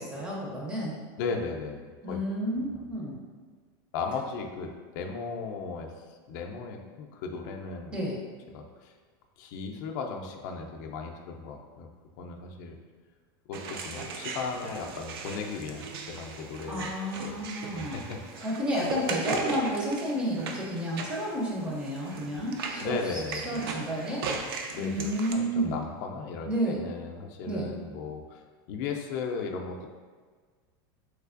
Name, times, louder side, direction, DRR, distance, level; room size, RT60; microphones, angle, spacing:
voice 1, 0.0-1.0 2.0-3.2 7.9-8.2 16.7-18.1 18.4-24.3 24.8-25.8 26.4-26.8 27.5-27.8, equal, 10° right, -3 dB, 0.4 m, -31 dB
voice 2, 1.2-2.2 3.9-7.9 8.5-8.9 9.4-11.9 12.2-12.8 13.5-16.9 17.2-17.3 17.7-18.5 22.8-23.7 24.7-28.4 28.7-29.9, left 4 dB, 55° left, 2 dB, 0.4 m, -36 dB
sound 1, 13.5-25.3, right 4 dB, 85° right, 0.4 m, -38 dB
3.2 x 3.1 x 2.4 m, 1.5 s
supercardioid pair, 170°, 12 cm